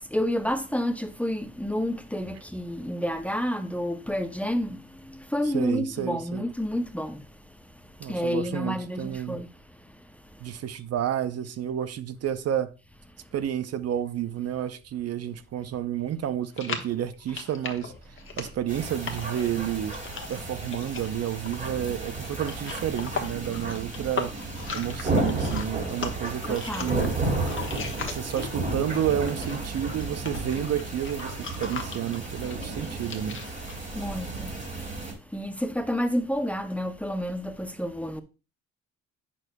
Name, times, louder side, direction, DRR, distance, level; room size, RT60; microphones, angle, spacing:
voice 1, 0.1-7.2 8.1-9.5 26.5-27.0 28.1-28.2 33.9-34.5 35.3-38.2, equal, 5° left, 0.6 m, -29 dB
voice 2, 5.4-6.5 8.0-9.4 10.4-12.7 13.3-20.0 20.3-24.3 24.7-27.1 28.1-33.4, right 10 dB, 55° right, 0.6 m, -30 dB
sound 1, 16.5-28.7 29.0-33.7, left 5 dB, 40° left, 1.3 m, -38 dB
sound 2, 18.7-35.1, right 3 dB, 25° right, 2.8 m, -33 dB
8.4 x 6.2 x 2.2 m
cardioid pair, 90°, 30 cm